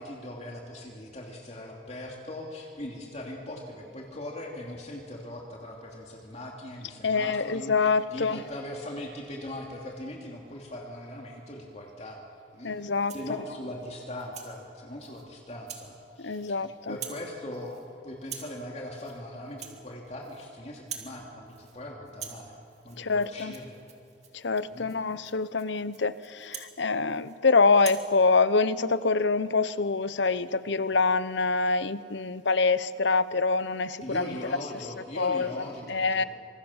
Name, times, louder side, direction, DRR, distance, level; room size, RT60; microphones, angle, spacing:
voice 1, 0.0-7.7 8.1-12.2 12.5-12.7 13.1-16.5 16.9-17.8 18.0-22.6 22.8-23.7 24.7-24.9 34.0-36.3, left 1 dB, 35° left, 0 dB, 2.8 m, -40 dB
voice 2, 7.0-8.4 12.6-13.1 16.2-17.0 23.0-23.5 24.3-34.6 35.2-36.2, left 4 dB, 70° left, 15 dB, 0.9 m, -25 dB
Rattle (instrument), 12.9-13.3 13.8-14.5 15.0-15.2 15.7-15.9 16.2-16.6 16.9-17.3 17.5-17.9 18.2-18.6 18.9-19.2 19.5-20.5 20.7-21.2 21.5-21.8 22.1-27.4 27.7-28.1, right 8 dB, 35° right, 2.7 m, -44 dB
26.5 x 26.0 x 7.3 m, 2.4 s
head